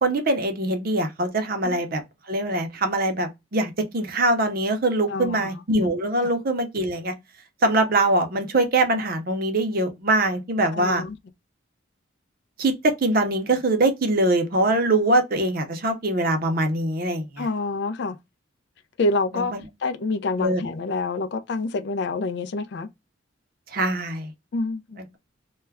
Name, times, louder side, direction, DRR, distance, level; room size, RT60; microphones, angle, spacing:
voice 1, 0.0-2.0 2.3-7.1 7.6-11.0 12.6-17.5 19.3-19.6 20.4-20.6 23.7-24.3, right 2 dB, 45° right, 0.6 m, -23 dB
voice 2, 5.1-5.5 6.2-6.3 10.7-11.2 17.4-18.2 19.0-19.5 19.8-22.9 24.5-25.0, left 3 dB, 55° left, 0.3 m, -27 dB
2.3 x 2.1 x 3.3 m
head